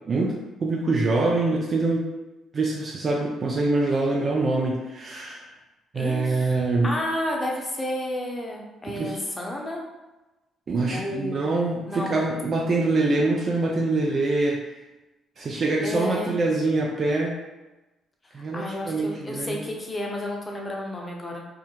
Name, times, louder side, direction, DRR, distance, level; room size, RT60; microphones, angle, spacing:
voice 1, 0.1-2.1 2.5-5.5 5.9-6.9 9.0-9.2 10.7-14.6 15.4-17.4 18.3-19.6, right 2 dB, 45° right, -1 dB, 0.4 m, -24 dB
voice 2, 5.9-6.5 6.8-9.8 10.9-11.5 11.9-12.2 15.8-16.4 18.2-21.4, left 1 dB, 25° left, -1 dB, 0.7 m, -31 dB
2.3 x 2.1 x 3.0 m, 1.1 s
hypercardioid pair, 50°, 0 cm